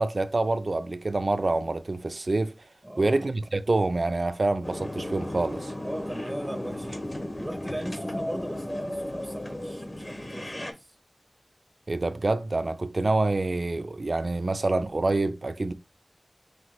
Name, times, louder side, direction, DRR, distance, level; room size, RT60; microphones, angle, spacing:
voice 1, 0.0-2.5 3.0-5.7 11.9-15.7, right 2 dB, 60° right, 0.4 m, -26 dB
voice 2, 2.8-3.2 5.8-7.1 7.4-10.9, right 1 dB, 15° right, 0.5 m, -38 dB
sound 1, 4.6-10.7, left 1 dB, 40° left, 1.0 m, -35 dB
6.0 x 2.4 x 3.0 m
wide cardioid pair, 60°, 0 cm